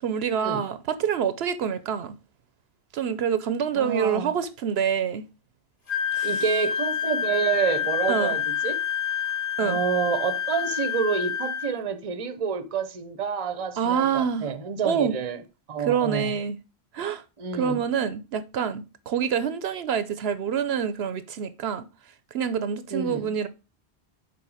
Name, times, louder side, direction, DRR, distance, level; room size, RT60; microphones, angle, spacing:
voice 1, 0.0-2.1 2.9-5.2 6.1-6.3 8.1-8.4 9.6-9.8 13.8-14.5 14.8-15.2 15.8-16.6 16.9-17.2 17.5-21.9 22.3-23.5, right 7 dB, 75° right, 0.9 m, -26 dB
voice 2, 3.7-4.3 6.2-8.8 9.6-15.4 15.7-16.4 17.4-17.8 22.9-23.3, right 6 dB, 35° right, 0.7 m, -28 dB
Wind instrument woodwind instrument, 5.9-11.7, left 8 dB, 55° left, 1.4 m, -28 dB
7.0 x 4.3 x 4.8 m
omnidirectional pair, 1.1 m